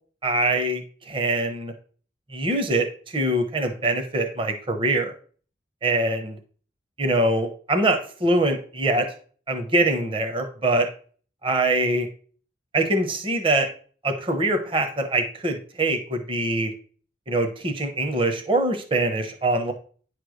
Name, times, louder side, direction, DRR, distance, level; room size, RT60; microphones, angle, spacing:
voice 1, 0.2-1.7 2.3-5.1 5.8-6.4 7.0-9.1 9.5-10.9 11.4-12.1 12.7-13.7 14.0-16.7 17.3-19.7, right 2 dB, 30° right, 5 dB, 1.0 m, -23 dB
9.7 x 3.3 x 6.4 m, 0.43 s
head